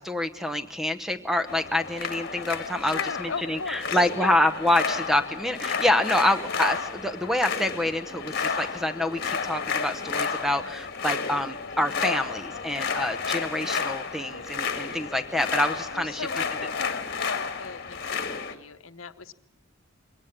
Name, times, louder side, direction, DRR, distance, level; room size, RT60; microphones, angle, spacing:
voice 1, 0.0-16.3, left 1 dB, ahead, 9 dB, 0.9 m, -27 dB
sound 1, 1.5-18.5, left 5 dB, 50° left, 1.7 m, -31 dB
voice 2, 2.8-4.4 6.5-6.6 15.9-19.3, left 5 dB, 80° left, 11 dB, 0.9 m, -37 dB
22.0 x 18.0 x 7.4 m, 0.79 s
head